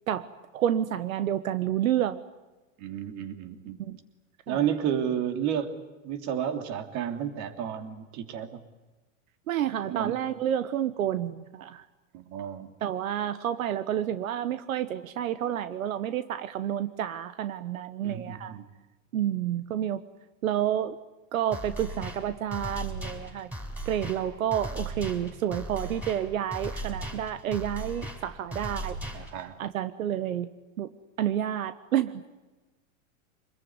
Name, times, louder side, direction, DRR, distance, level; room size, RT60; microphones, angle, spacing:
voice 1, 0.5-2.2 3.8-4.0 4.5-4.6 9.5-11.8 12.8-18.6 19.1-20.0 20.4-21.0 21.3-23.5 23.9-29.0 29.6-30.5 30.8-30.9 31.2-32.3, right 10 dB, 85° right, 12 dB, 1.3 m, -29 dB
voice 2, 2.8-3.8 4.5-5.8 6.0-8.6 9.9-10.2 12.1-12.7 18.0-18.7 29.1-29.6, right 9 dB, 45° right, 7 dB, 3.3 m, -32 dB
sound 1, 21.5-29.5, right 1 dB, 5° right, 5.7 m, -38 dB
26.0 x 21.0 x 9.7 m, 1.2 s
supercardioid pair, 130°, 40 cm